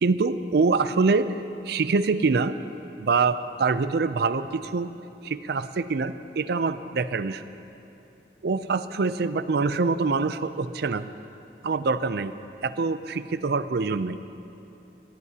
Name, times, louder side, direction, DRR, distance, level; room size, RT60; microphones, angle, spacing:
voice 1, 0.0-1.3 1.6-2.5 3.0-4.9 5.2-7.4 8.4-11.1 11.6-12.3 12.6-14.2, right 4 dB, 60° right, 12 dB, 0.5 m, -25 dB
19.0 x 15.5 x 2.9 m, 2.9 s
head